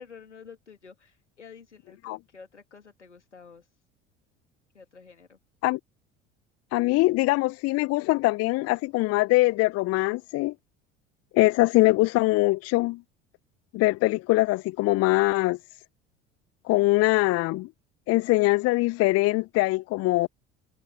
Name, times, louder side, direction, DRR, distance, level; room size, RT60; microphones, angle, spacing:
voice 1, 0.0-3.7 4.7-5.4, left 6 dB, 85° left, 2.9 m, -49 dB
voice 2, 6.7-10.5 11.3-13.0 13.7-15.6 16.6-17.7 18.1-20.3, left 20 dB, 45° left, 0.7 m, -22 dB
figure-of-eight pair, 65°, 34 cm